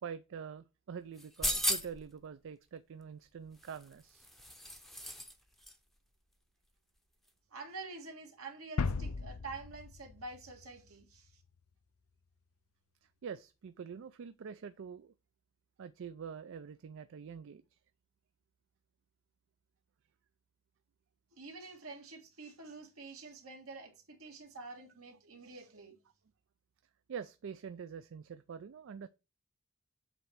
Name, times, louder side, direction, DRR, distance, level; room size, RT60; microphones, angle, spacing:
voice 1, 0.0-4.3 13.0-15.1 15.8-17.8 27.1-29.1, right 7 dB, 60° right, 0.4 m, -45 dB
sound 1, 1.2-2.1 3.6-5.3 5.6-5.7, equal, ahead, 0.7 m, -36 dB
voice 2, 7.5-11.4 21.3-26.0, right 3 dB, 80° right, 2.0 m, -48 dB
sound 2, 8.8-11.4, left 4 dB, 85° left, 0.6 m, -38 dB
8.0 x 3.1 x 6.0 m
head